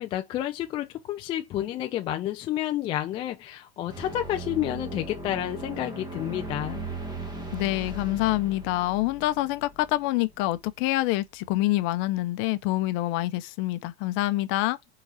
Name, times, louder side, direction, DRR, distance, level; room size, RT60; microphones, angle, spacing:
voice 1, 0.0-6.8, left 13 dB, 15° left, 0.3 m, -30 dB
sound 1, 3.9-10.6, right 2 dB, 15° right, 1.3 m, -38 dB
voice 2, 7.5-14.8, left 17 dB, 40° left, 0.8 m, -26 dB
5.4 x 4.0 x 4.7 m
supercardioid pair, 140°, 32 cm